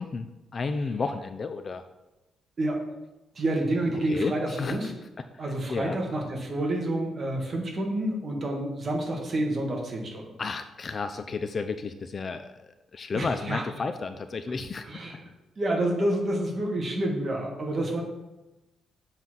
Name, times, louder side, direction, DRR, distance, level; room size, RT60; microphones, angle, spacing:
voice 1, 0.0-1.8 4.1-4.9 5.3-5.4 5.7-6.0 10.4-14.9, left 4 dB, 30° left, 8 dB, 0.4 m, -32 dB
voice 2, 3.3-4.9 5.4-10.2 13.1-13.6 14.8-15.2 15.5-18.0, right 1 dB, 30° right, 0 dB, 1.5 m, -28 dB
7.3 x 4.0 x 6.0 m, 1.0 s
cardioid pair, 155°, 0 cm